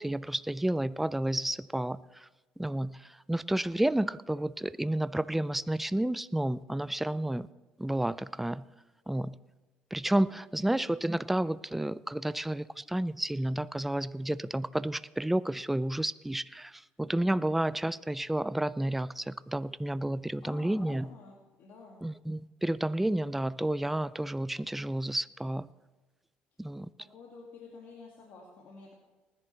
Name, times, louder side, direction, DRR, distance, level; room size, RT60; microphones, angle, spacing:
voice 1, 0.0-2.3 2.6-7.5 7.8-8.7 9.1-9.4 9.9-21.1 22.0-25.7 26.6-26.9, right 1 dB, 5° right, 17 dB, 0.4 m, -31 dB
voice 2, 10.4-10.8 20.4-22.0 27.1-28.9, left 4 dB, 65° left, -2 dB, 2.2 m, -50 dB
19.5 x 10.5 x 3.3 m, 1.2 s
supercardioid pair, 90°, 4 cm